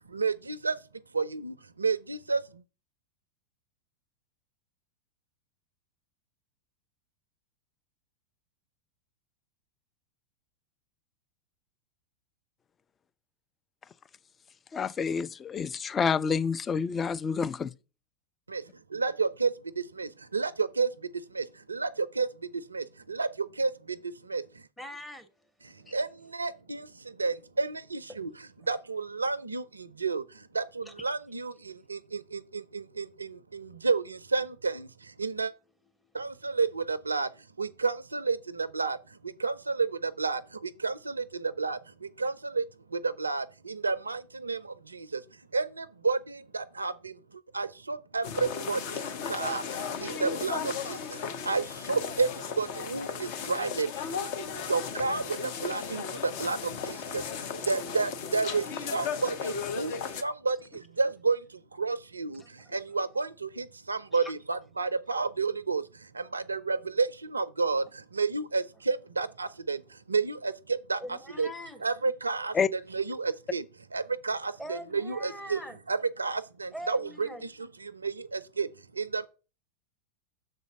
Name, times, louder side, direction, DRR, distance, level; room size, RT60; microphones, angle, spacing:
voice 1, 0.1-0.8 1.1-2.6 18.5-24.7 25.6-35.5 36.1-71.5 71.8-73.7 73.9-75.6 75.9-79.3, right 4 dB, 80° right, 0.4 m, -31 dB
voice 2, 14.7-17.7 72.5-72.7, left 6 dB, 20° left, 0.3 m, -28 dB
voice 3, 24.8-25.3 25.8-26.0 28.2-28.3 30.9-31.0 62.4-62.7 64.1-64.3 71.0-71.8 74.6-75.8 76.7-77.5, equal, 5° left, 0.9 m, -42 dB
sound 1, 48.2-60.2, left 6 dB, 50° left, 0.8 m, -35 dB
6.6 x 4.0 x 6.1 m
figure-of-eight pair, 90°, 0 cm